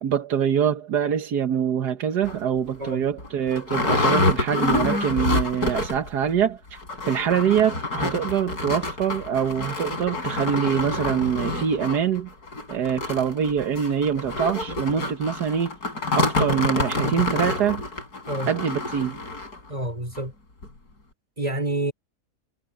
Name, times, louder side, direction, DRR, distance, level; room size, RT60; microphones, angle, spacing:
voice 1, 0.0-6.8 7.1-12.3 12.7-15.8 16.2-17.8 18.5-19.2, right 8 dB, 90° right, 1.8 m, -24 dB
sound 1, 2.2-2.4 2.9-3.0 3.2-6.1 6.4-6.5 6.8-19.6 20.2-20.3 20.6-20.7, left 2 dB, 75° left, 5.6 m, -27 dB
voice 2, 19.7-20.3 21.4-21.9, right 1 dB, 25° right, 4.0 m, -28 dB
omnidirectional pair, 1.7 m